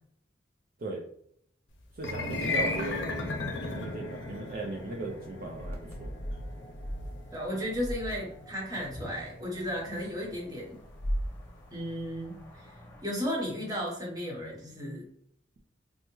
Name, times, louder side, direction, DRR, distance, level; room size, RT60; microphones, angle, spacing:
sound 1, 1.9-12.3, left 2 dB, 85° left, 0.6 m, -37 dB
voice 1, 2.0-6.1, right 2 dB, 50° right, -1 dB, 0.4 m, -38 dB
sound 2, 3.8-13.0, equal, 15° left, 0.5 m, -41 dB
voice 2, 7.3-10.8 11.7-12.6 13.0-15.1, equal, 20° right, -2 dB, 0.9 m, -34 dB
3.4 x 2.0 x 3.0 m, 0.67 s
head